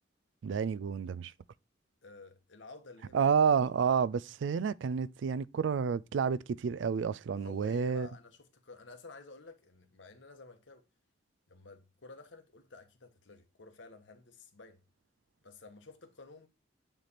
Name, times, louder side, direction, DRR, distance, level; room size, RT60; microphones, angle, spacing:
voice 1, 0.4-1.3 3.1-8.1, right 6 dB, 75° right, 0.3 m, -30 dB
voice 2, 2.0-3.3 7.3-10.8 11.5-14.8 15.4-16.5, left 3 dB, 80° left, 1.2 m, -52 dB
9.1 x 3.4 x 4.1 m
head